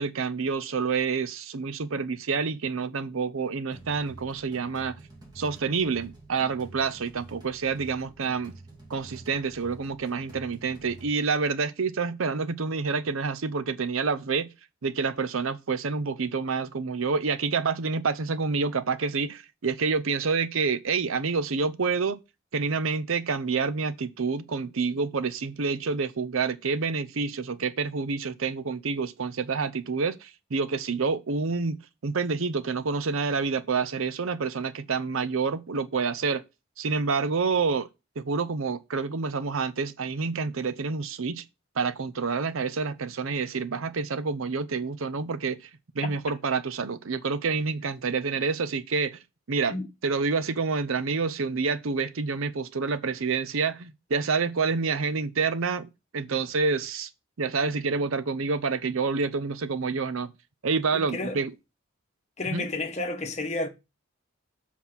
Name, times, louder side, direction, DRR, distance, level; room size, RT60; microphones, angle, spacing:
voice 1, 0.0-4.9 5.4-8.5 8.9-14.5 14.8-22.2 22.5-31.8 32.0-36.4 36.8-37.9 38.2-41.4 41.8-45.7 45.9-49.2 49.5-49.8 50.0-57.1 57.4-60.3 60.6-61.5 62.5-62.7, right 4 dB, 75° right, 0.6 m, -28 dB
sound 1, 3.7-11.1, right 2 dB, 20° right, 2.2 m, -48 dB
voice 2, 60.9-61.4 62.4-63.7, left 2 dB, 30° left, 1.1 m, -31 dB
7.4 x 4.2 x 5.9 m
head